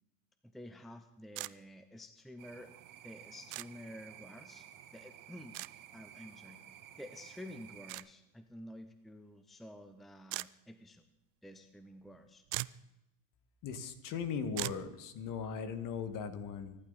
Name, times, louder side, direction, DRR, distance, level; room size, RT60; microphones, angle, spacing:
voice 1, 0.4-2.7 3.0-4.7 4.9-5.6 5.9-6.6 7.0-11.0 11.4-12.4, left 1 dB, ahead, 9 dB, 0.7 m, -50 dB
sound 1, 1.4-1.5 3.5-3.7 5.5-5.7 7.9-8.1 10.3-10.5 12.1-12.2 12.5-12.8 14.6-14.8, right 23 dB, 65° right, 0.6 m, -39 dB
sound 2, 2.4-8.0, right 10 dB, 50° right, 1.7 m, -54 dB
voice 2, 13.6-16.8, left 6 dB, 50° left, 10 dB, 1.9 m, -38 dB
24.5 x 12.0 x 4.1 m, 0.94 s
supercardioid pair, 130°, 42 cm